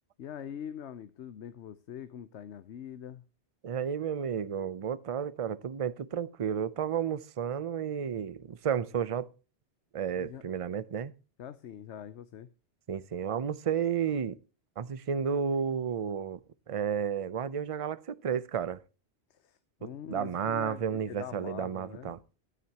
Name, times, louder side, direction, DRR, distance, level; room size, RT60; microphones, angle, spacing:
voice 1, 0.2-3.2 10.2-10.4 11.4-12.5 19.3-22.2, left 9 dB, 80° left, 1.0 m, -43 dB
voice 2, 3.6-9.3 9.9-11.1 12.9-14.4 14.8-16.4 16.7-18.8 19.8-22.2, right 7 dB, 40° right, 0.6 m, -32 dB
13.5 x 12.5 x 2.9 m
omnidirectional pair, 1.1 m